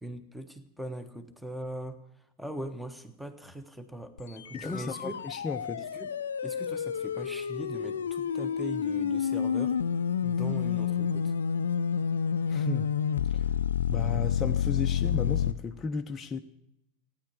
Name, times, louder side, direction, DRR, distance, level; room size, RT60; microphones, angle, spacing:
voice 1, 0.0-2.0 2.4-5.2 5.8-6.1 6.4-9.8 10.2-11.3, right 1 dB, ahead, 10 dB, 1.4 m, -40 dB
sound 1, 4.2-15.5, left 8 dB, 75° left, 0.5 m, -29 dB
voice 2, 4.5-5.8 12.5-12.9 13.3-13.4 13.9-16.4, left 4 dB, 20° left, 4 dB, 0.7 m, -34 dB
16.0 x 9.9 x 8.4 m, 0.83 s
figure-of-eight pair, 85°, 0 cm